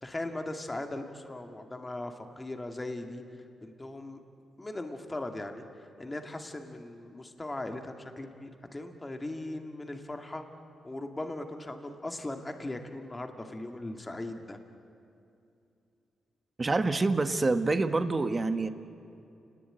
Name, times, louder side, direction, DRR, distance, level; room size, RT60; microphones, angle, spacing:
voice 1, 0.0-3.2 3.6-4.2 4.6-5.6 6.0-10.4 10.8-14.6, left 2 dB, 15° left, 5 dB, 2.1 m, -39 dB
voice 2, 16.6-18.7, right 3 dB, 25° right, 9 dB, 1.3 m, -26 dB
30.0 x 19.5 x 9.1 m, 2.7 s
cardioid pair, 120°, 0 cm